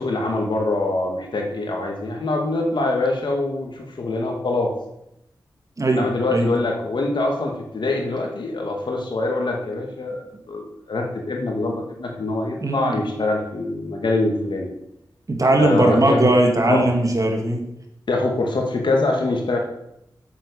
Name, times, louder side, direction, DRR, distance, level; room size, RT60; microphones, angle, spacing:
voice 1, 0.0-4.7 5.9-10.2 10.5-14.7 15.6-16.3 16.6-16.9 18.1-19.6, left 2 dB, 70° left, 1 dB, 2.3 m, -24 dB
voice 2, 5.8-6.5 12.6-13.0 15.3-17.7, right 1 dB, 45° right, 2 dB, 2.4 m, -19 dB
8.6 x 7.5 x 7.1 m, 0.82 s
cardioid pair, 55°, 8 cm